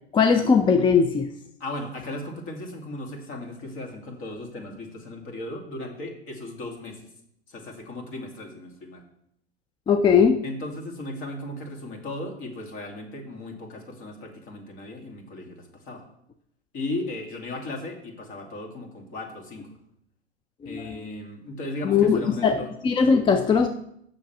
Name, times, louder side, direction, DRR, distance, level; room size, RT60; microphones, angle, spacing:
voice 1, 0.1-1.3 9.9-10.4 20.6-20.7 21.8-23.7, left 6 dB, 15° left, 8 dB, 0.4 m, -19 dB
voice 2, 1.6-7.1 7.5-9.0 10.4-16.0 16.7-19.8 20.7-22.7, left 2 dB, 40° left, 3 dB, 2.4 m, -36 dB
7.1 x 6.5 x 5.8 m, 0.74 s
hypercardioid pair, 100°, 32 cm